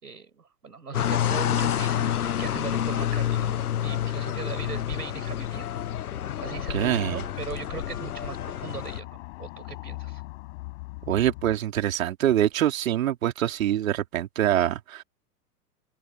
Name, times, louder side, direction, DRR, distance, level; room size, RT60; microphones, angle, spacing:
voice 1, 0.0-5.7 6.4-10.2, right 5 dB, 75° right, 6.0 m, -39 dB
sound 1, 0.9-9.0, left 10 dB, 70° left, 1.0 m, -28 dB
sound 2, 4.5-11.6, left 23 dB, 45° left, 7.7 m, -42 dB
voice 2, 6.7-7.2 11.1-15.0, right 11 dB, 60° right, 3.9 m, -25 dB
open air
figure-of-eight pair, 100°, 47 cm